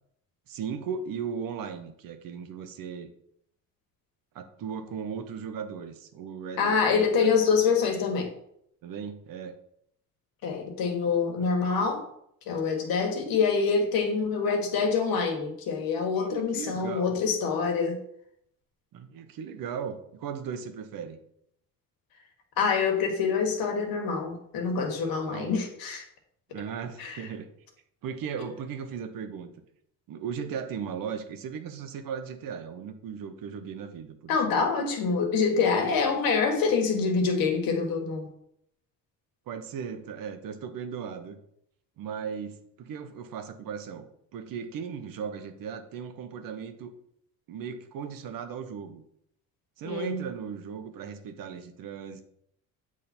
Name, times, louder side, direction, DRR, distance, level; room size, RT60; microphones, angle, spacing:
voice 1, 0.5-3.1 4.3-7.4 8.8-9.5 11.4-11.5 16.2-17.2 18.9-21.2 25.0-25.5 26.5-27.5 28.0-29.5 30.1-34.7 35.7-36.0 39.5-41.4 42.0-46.9 47.5-49.0 49.8-52.2, right 7 dB, 70° right, 8 dB, 0.9 m, -37 dB
voice 2, 6.6-8.3 10.4-12.0 12.5-18.0 22.6-26.0 27.0-27.2 34.3-38.3 49.8-50.2, left 5 dB, 80° left, 3 dB, 1.5 m, -26 dB
8.3 x 3.6 x 4.4 m, 0.72 s
cardioid pair, 145°, 35 cm